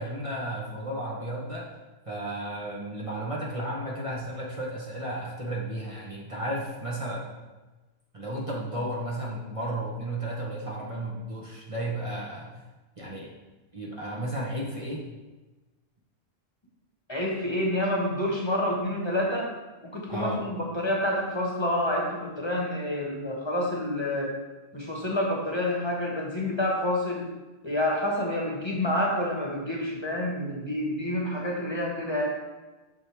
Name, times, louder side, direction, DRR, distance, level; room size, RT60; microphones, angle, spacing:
voice 1, 0.0-1.7 2.0-7.3 8.1-12.6 13.0-13.3 13.7-15.0 20.1-20.4, right 1 dB, 30° right, -4 dB, 1.0 m, -33 dB
voice 2, 17.1-19.5 19.8-24.3 24.7-27.2 27.6-32.3, left 1 dB, 25° left, -2 dB, 1.3 m, -28 dB
7.4 x 6.1 x 3.4 m, 1.2 s
omnidirectional pair, 1.1 m